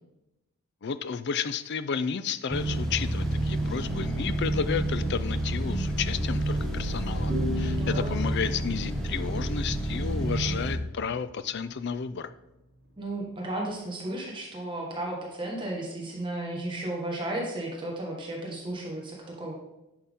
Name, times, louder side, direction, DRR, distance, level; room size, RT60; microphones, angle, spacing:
voice 1, 0.8-12.3, left 6 dB, 50° left, 13 dB, 0.4 m, -32 dB
sound 1, 2.5-10.7, right 1 dB, ahead, 1.2 m, -29 dB
sound 2, 7.3-10.7, left 3 dB, 70° right, 3.3 m, -38 dB
voice 2, 7.6-8.1 13.0-19.5, right 1 dB, 20° right, -2 dB, 1.5 m, -34 dB
11.0 x 5.8 x 3.6 m, 0.93 s
head